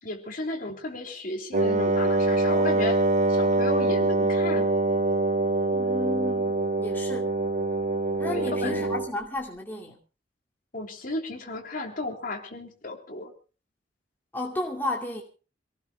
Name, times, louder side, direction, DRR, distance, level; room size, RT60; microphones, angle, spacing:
voice 1, 0.0-3.0 3.3-4.7 8.2-8.9 10.7-13.3, left 2 dB, 50° left, 3.5 m, -34 dB
Wind instrument woodwind instrument, 1.5-9.1, right 2 dB, 40° right, 1.1 m, -24 dB
voice 2, 5.7-7.3 8.2-10.0 14.3-15.2, left 2 dB, 10° left, 2.4 m, -33 dB
27.5 x 18.0 x 2.3 m
head